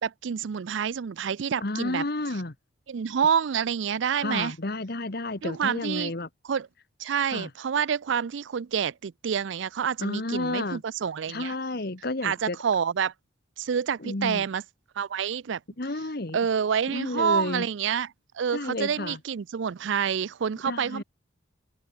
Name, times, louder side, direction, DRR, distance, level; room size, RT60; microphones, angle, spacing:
voice 1, 0.0-2.0 2.9-4.5 5.4-6.1 6.5-6.7 7.0-11.5 12.2-13.1 13.6-14.6 15.0-15.6 16.3-18.1 18.3-21.0, right 7 dB, 70° right, 0.4 m, -28 dB
voice 2, 1.6-2.5 4.2-6.3 7.3-7.5 10.0-10.8 11.3-12.6 14.0-14.4 15.8-16.4 16.9-17.7 18.5-19.2 20.6-21.0, left 2 dB, 50° left, 1.4 m, -31 dB
head